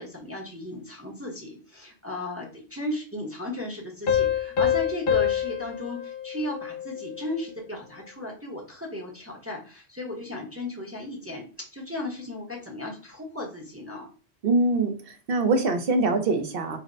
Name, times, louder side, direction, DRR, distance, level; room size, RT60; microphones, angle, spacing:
voice 1, 0.0-14.1, left 1 dB, 15° right, -1 dB, 0.7 m, -35 dB
Piano, 4.1-7.4, left 9 dB, 65° left, 0.8 m, -26 dB
voice 2, 14.4-16.8, right 2 dB, 60° right, 5 dB, 0.8 m, -24 dB
5.0 x 2.1 x 2.5 m, 0.38 s
omnidirectional pair, 1.1 m